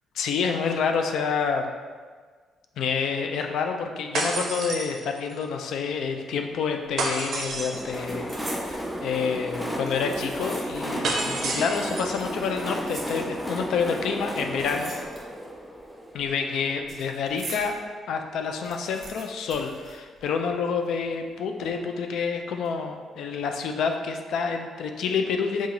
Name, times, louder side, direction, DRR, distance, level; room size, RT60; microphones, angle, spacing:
voice 1, 0.2-1.7 2.8-14.9 16.1-17.8 18.1-25.7, left 6 dB, 75° left, 4 dB, 0.3 m, -28 dB
sound 1, 4.1-5.4 7.0-8.0 11.0-12.2, right 3 dB, 65° right, 0.5 m, -30 dB
sound 2, 6.9-7.2 7.4-8.8 9.6-11.0 11.3-11.4 12.2-13.6 14.3-15.5 15.8-17.8 18.2-18.3 18.4-20.6 20.8-20.9 21.6-22.0 22.5-22.7, right 2 dB, 45° right, 1.0 m, -43 dB
Train, 7.3-16.9, equal, 5° left, 0.4 m, -33 dB
3.9 x 2.4 x 2.8 m, 1.5 s
cardioid pair, 100°, 0 cm